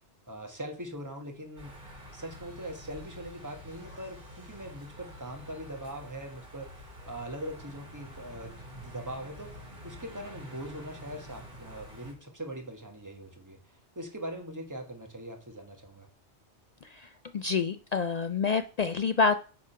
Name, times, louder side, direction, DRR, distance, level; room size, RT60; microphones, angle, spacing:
voice 1, 0.3-1.7 2.1-13.6 13.9-16.1, right 1 dB, 15° right, 3 dB, 1.4 m, -41 dB
sound 1, 1.6-12.1, equal, 50° right, 2.5 m, -48 dB
voice 2, 16.8-19.4, left 5 dB, 60° left, 10 dB, 0.4 m, -28 dB
8.8 x 3.7 x 5.6 m, 0.37 s
omnidirectional pair, 1.1 m